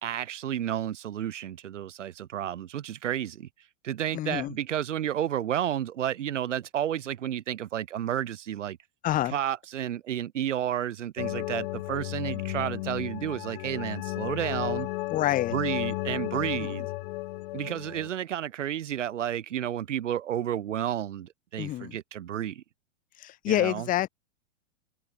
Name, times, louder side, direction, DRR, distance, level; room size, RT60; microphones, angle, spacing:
voice 1, 0.0-3.5 3.8-8.8 9.3-14.9 15.5-16.9 17.5-22.6 23.5-23.9, right 10 dB, 90° right, 2.7 m, -31 dB
voice 2, 4.1-4.5 9.0-9.4 15.1-15.6 16.6-16.7 21.6-22.0 23.1-24.1, left 14 dB, 20° left, 2.6 m, -27 dB
sound 1, 11.2-18.1, left 20 dB, 45° left, 5.8 m, -34 dB
supercardioid pair, 160°, 36 cm